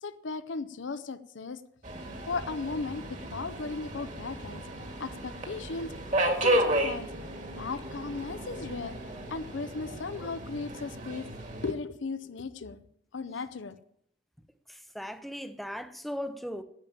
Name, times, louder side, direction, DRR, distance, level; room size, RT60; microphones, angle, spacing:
voice 1, 0.0-1.6 2.3-4.6 5.0-5.9 6.3-7.1 7.6-8.9 9.3-11.3 11.6-12.8 13.1-13.8, left 4 dB, 75° left, 0.7 m, -36 dB
Subway metro underground, 1.8-11.7, right 1 dB, 40° right, 1.9 m, -33 dB
voice 2, 14.7-16.6, equal, ahead, 0.7 m, -38 dB
10.5 x 8.9 x 8.6 m
head